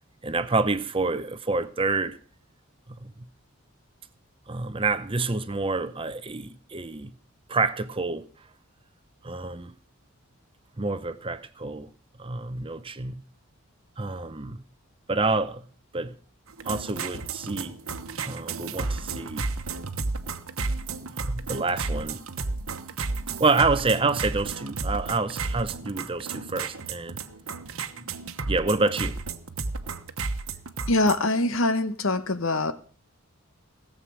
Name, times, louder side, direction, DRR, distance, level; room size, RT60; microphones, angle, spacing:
voice 1, 0.2-2.2 2.9-3.1 4.5-7.1 7.5-8.2 9.2-9.7 10.8-11.9 12.2-13.2 14.0-14.6 15.1-15.7 15.9-16.2 16.6-17.8 18.2-19.5 21.2-22.2 23.4-27.2 28.4-29.2, right 3 dB, 25° right, 0.7 m, -27 dB
sound 1, 16.5-31.2, right 3 dB, 70° right, 1.1 m, -33 dB
voice 2, 30.9-32.7, left 2 dB, 65° left, 1.1 m, -23 dB
17.5 x 7.6 x 6.3 m
head